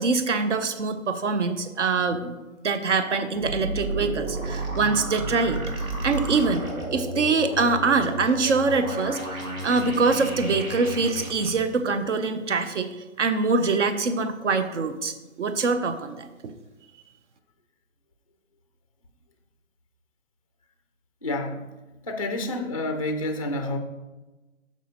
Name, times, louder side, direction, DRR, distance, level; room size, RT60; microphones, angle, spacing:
voice 1, 0.0-2.4 2.6-16.5, right 4 dB, 60° right, 9 dB, 0.7 m, -24 dB
sound 1, 3.3-11.5, right 1 dB, 90° right, 1.9 m, -32 dB
voice 2, 21.2-21.7 22.0-23.8, left 1 dB, 30° left, 6 dB, 0.3 m, -29 dB
9.2 x 6.1 x 2.8 m, 1.1 s
figure-of-eight pair, 145°, 41 cm